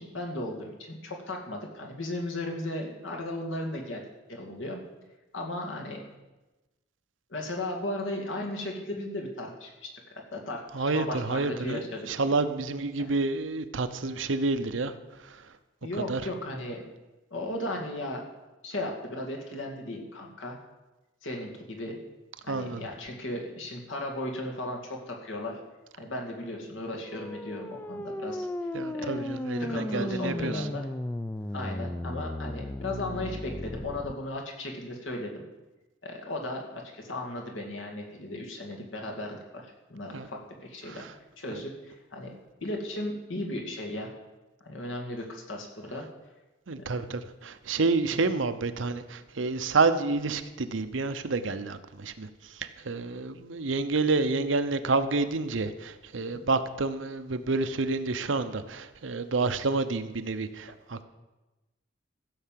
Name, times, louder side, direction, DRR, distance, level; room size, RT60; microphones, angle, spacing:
voice 1, 0.0-4.0 4.3-4.8 5.3-6.1 7.3-9.9 10.3-12.3 13.0-13.2 15.8-16.8 17.3-18.2 18.6-20.6 21.2-22.0 22.4-25.6 26.0-28.5 28.9-29.3 29.6-30.8 31.5-35.4 36.0-41.1 41.4-44.1 44.6-46.1 46.8-47.1 48.1-48.2, left 1 dB, 80° left, 1 dB, 2.4 m, -36 dB
voice 2, 10.7-14.9 15.3-15.4 16.1-16.2 22.5-22.9 28.7-30.7 40.1-40.3 40.9-41.1 41.5-41.6 46.7-52.3 52.5-61.0, right 3 dB, 80° right, 10 dB, 0.8 m, -29 dB
sound 1, 27.0-34.1, left 1 dB, 10° left, 0.4 m, -35 dB
15.5 x 5.7 x 7.5 m, 1.1 s
head